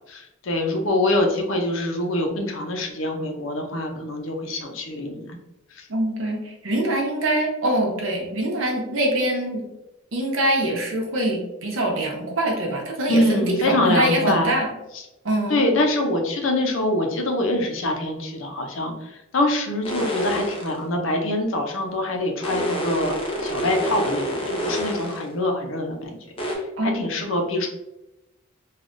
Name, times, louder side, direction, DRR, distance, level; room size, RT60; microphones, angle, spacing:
voice 1, 0.1-5.3 5.8-5.9 13.1-14.5 14.9-15.0 15.5-18.9 19.3-23.1 23.4-24.3 24.6-26.2 26.8-27.7, left 1 dB, 80° left, 2 dB, 0.6 m, -24 dB
voice 2, 5.9-6.4 6.6-9.6 10.1-14.7 15.2-15.6 26.8-27.1, right 1 dB, 85° right, 0 dB, 0.8 m, -24 dB
sound 1, 19.8-20.8 22.4-25.3 26.4-26.6, equal, 30° left, 0.6 m, -27 dB
3.3 x 2.3 x 2.5 m, 0.93 s
head